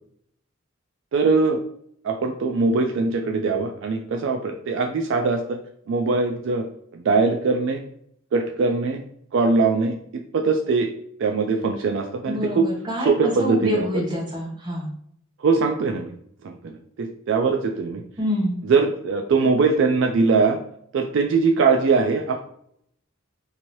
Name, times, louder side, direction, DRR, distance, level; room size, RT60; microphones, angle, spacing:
voice 1, 1.1-1.6 2.0-5.6 5.9-6.7 6.9-7.8 8.3-9.0 9.3-9.9 10.3-10.9 11.2-12.6 13.0-14.0 15.4-16.1 16.4-18.0 18.6-20.6 20.9-22.4, right 4 dB, 60° right, 3 dB, 0.3 m, -21 dB
voice 2, 12.3-14.9 18.2-18.6, left 1 dB, 20° right, -3 dB, 0.9 m, -26 dB
2.9 x 2.6 x 3.0 m, 0.68 s
head